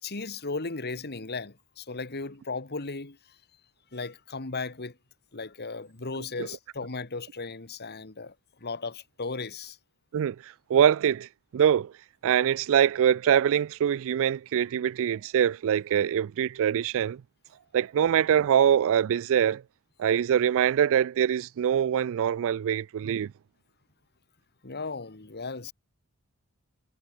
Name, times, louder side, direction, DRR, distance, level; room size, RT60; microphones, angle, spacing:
voice 1, 0.0-3.4 3.9-5.0 5.3-9.8 24.6-25.7, left 3 dB, 50° left, 1.9 m, -36 dB
voice 2, 10.1-11.3 11.5-11.9 12.2-17.2 17.7-19.6 20.0-23.3, right 9 dB, 65° right, 0.3 m, -24 dB
head